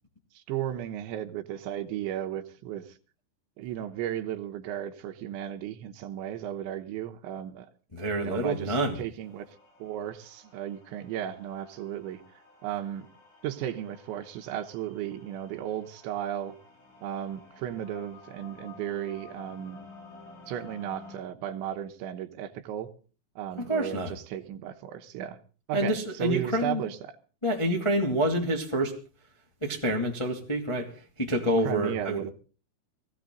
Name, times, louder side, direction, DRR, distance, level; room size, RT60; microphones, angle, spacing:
voice 1, 0.3-3.0 3.6-7.7 8.2-12.2 12.6-13.1 13.4-16.6 17.0-19.8 20.5-22.9 23.4-25.4 25.7-27.0 31.6-32.3, right 11 dB, 75° right, 3.2 m, -35 dB
voice 2, 7.9-9.0 23.6-24.1 25.7-26.8 27.4-28.9 29.6-32.2, right 1 dB, 15° left, 0.9 m, -27 dB
sound 1, 9.2-21.2, left 2 dB, 85° left, 8.8 m, -52 dB
20.0 x 16.0 x 3.9 m
omnidirectional pair, 5.5 m